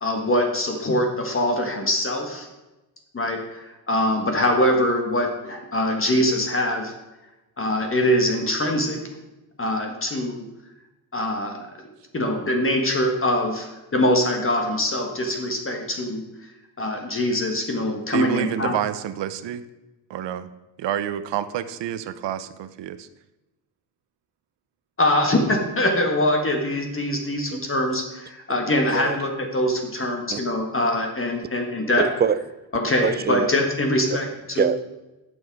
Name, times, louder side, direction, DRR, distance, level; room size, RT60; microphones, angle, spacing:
voice 1, 0.0-2.5 3.1-6.9 7.6-9.0 9.6-10.4 11.1-11.6 12.1-16.2 16.8-18.7 25.0-32.0 32.7-34.7, left 1 dB, 30° left, 3 dB, 1.5 m, -23 dB
voice 2, 18.1-19.6 20.1-20.5 20.8-23.1, right 10 dB, 65° right, 13 dB, 0.8 m, -28 dB
voice 3, 32.0-32.4 33.0-33.5 34.6-34.8, right 7 dB, 25° right, 14 dB, 0.4 m, -23 dB
11.0 x 6.2 x 4.7 m, 1.0 s
cardioid pair, 90°, 45 cm